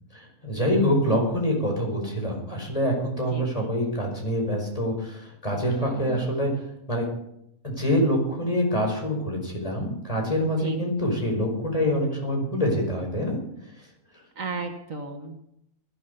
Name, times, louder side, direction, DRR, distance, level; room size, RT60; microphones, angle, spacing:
voice 1, 0.1-6.5 6.9-7.0 7.6-13.4, equal, 25° left, 1 dB, 5.5 m, -25 dB
voice 2, 3.3-3.7 5.7-6.3 10.6-10.8 14.4-15.4, right 4 dB, 65° right, 5 dB, 2.0 m, -35 dB
20.5 x 12.5 x 5.5 m, 0.76 s
omnidirectional pair, 1.5 m